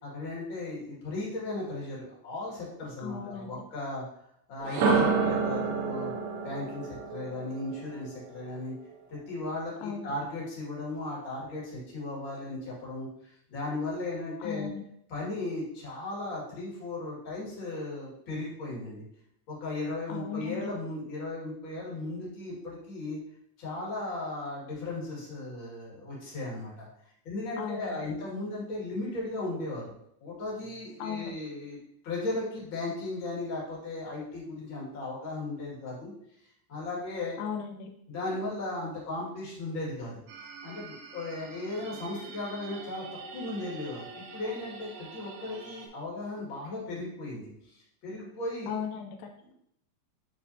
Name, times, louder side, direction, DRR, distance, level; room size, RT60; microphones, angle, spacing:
voice 1, 0.0-4.0 4.5-8.7 9.1-14.7 15.1-19.0 19.5-23.2 23.6-26.9 27.2-29.9 30.2-31.8 32.0-36.1 36.7-37.4 38.1-40.2 40.6-43.0 43.3-48.7 49.4-49.5, left 2 dB, 40° left, -5 dB, 2.7 m, -36 dB
voice 2, 3.0-3.6 9.8-10.1 14.4-14.8 20.1-20.7 27.6-28.1 31.0-31.3 37.4-37.9 48.7-49.5, left 7 dB, 85° left, 4 dB, 2.2 m, -37 dB
sound 1, 4.6-8.6, right 4 dB, 90° right, 2.7 m, -29 dB
sound 2, 40.3-45.9, right 4 dB, 70° right, 2.1 m, -46 dB
9.7 x 4.3 x 2.8 m, 0.72 s
omnidirectional pair, 3.8 m